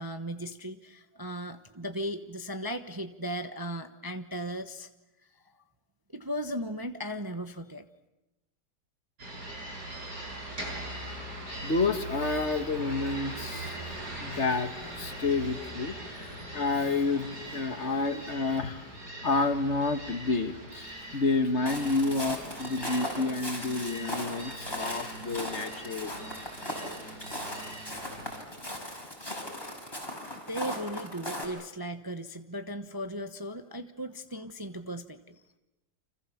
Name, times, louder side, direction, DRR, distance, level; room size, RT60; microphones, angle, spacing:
voice 1, 0.0-4.9 5.3-5.4 6.1-7.8 30.5-35.4, equal, 15° right, 7 dB, 0.9 m, -37 dB
sound 1, 9.2-28.4, right 1 dB, 75° right, 7.1 m, -41 dB
voice 2, 11.6-18.9 19.2-26.3, left 3 dB, 45° left, 8 dB, 1.6 m, -30 dB
Walk footsteps, 21.7-31.5, left 1 dB, 15° left, 5.6 m, -38 dB
30.0 x 26.5 x 7.1 m, 0.99 s
omnidirectional pair, 1.8 m